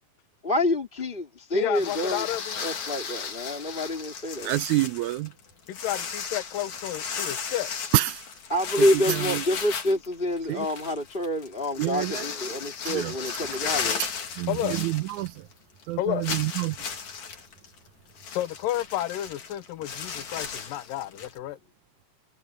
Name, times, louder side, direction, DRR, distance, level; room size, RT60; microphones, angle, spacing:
voice 1, 0.4-2.3 2.6-4.5 8.5-14.0, left 1 dB, 15° left, 3.3 m, -27 dB
voice 2, 1.5-2.6 5.7-7.7 14.5-14.8 16.0-16.3 18.3-21.6, left 13 dB, 80° left, 2.6 m, -31 dB
sound 1, 1.7-15.5 15.8-15.9 16.2-21.4, left 6 dB, 60° left, 4.1 m, -35 dB
voice 3, 4.5-5.3 7.9-8.2 8.8-9.4 10.5-10.7 11.8-12.3 12.9-13.2 14.0-14.1 14.4-15.5 15.9-16.8, right 18 dB, 80° right, 1.8 m, -27 dB
omnidirectional pair, 4.0 m